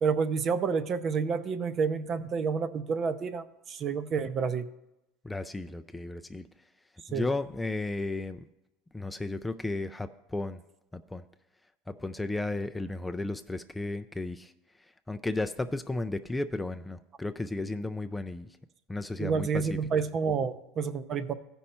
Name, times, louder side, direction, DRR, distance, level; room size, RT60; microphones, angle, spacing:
voice 1, 0.0-4.7 7.1-7.3 19.2-21.3, right 5 dB, 35° right, 12 dB, 0.6 m, -29 dB
voice 2, 5.2-6.5 7.1-8.4 8.9-10.6 10.9-11.2 11.9-14.5 15.1-18.5 18.9-19.7, left 2 dB, 10° left, 8 dB, 0.3 m, -34 dB
15.0 x 5.4 x 4.3 m, 0.91 s
supercardioid pair, 120°, 0 cm